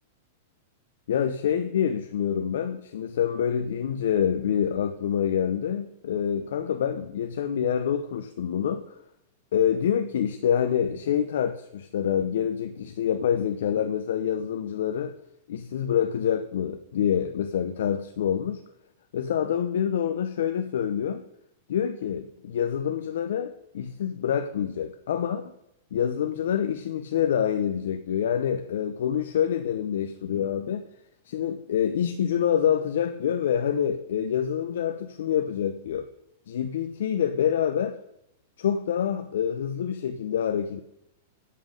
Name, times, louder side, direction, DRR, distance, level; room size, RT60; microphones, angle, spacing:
voice 1, 1.1-9.0 9.5-15.2 15.5-18.6 19.1-21.2 21.7-25.4 25.9-30.8 31.3-36.1 36.5-38.0 38.6-40.8, left 9 dB, 75° left, 8 dB, 0.7 m, -26 dB
8.5 x 7.5 x 5.3 m, 0.81 s
supercardioid pair, 170°, 0 cm